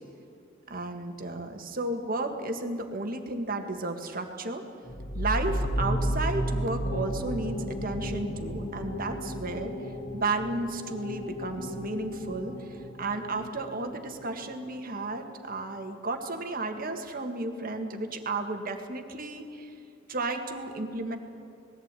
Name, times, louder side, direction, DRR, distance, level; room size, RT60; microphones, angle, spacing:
voice 1, 0.7-4.6 5.1-9.7 10.1-19.7 20.1-21.2, right 2 dB, 45° right, 5 dB, 1.9 m, -33 dB
sound 1, 4.8-14.2, equal, 40° left, 2.6 m, -33 dB
20.5 x 15.0 x 9.1 m, 2.7 s
head